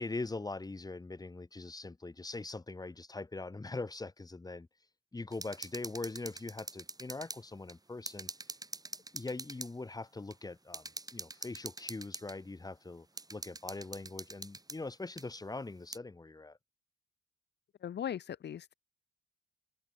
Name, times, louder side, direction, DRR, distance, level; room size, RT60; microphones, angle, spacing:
voice 1, 0.0-4.7 5.1-8.3 9.1-16.6, left 3 dB, 20° left, 3.8 m, -42 dB
sound 1, 5.3-7.4 7.7-7.8 8.1-9.7 10.3-10.4 10.7-12.4 13.2-14.8 15.2-15.3 15.9-16.0, right 2 dB, 20° right, 6.0 m, -44 dB
voice 2, 17.8-18.7, left 9 dB, 60° left, 2.0 m, -39 dB
open air
cardioid pair, 90°, 20 cm